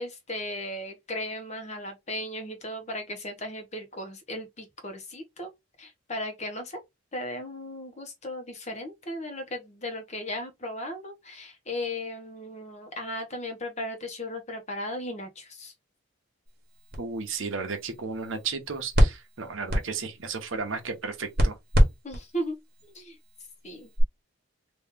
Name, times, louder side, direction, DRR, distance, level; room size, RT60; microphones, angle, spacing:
voice 1, 0.0-5.5 5.8-6.8 7.1-15.7 22.0-22.6 22.8-23.2 23.6-23.9, left 1 dB, 35° left, 1.0 m, -36 dB
sound 1, 16.5-24.0, equal, 50° right, 1.2 m, -28 dB
voice 2, 17.0-21.6, right 5 dB, 80° right, 0.9 m, -34 dB
3.1 x 2.7 x 3.6 m
head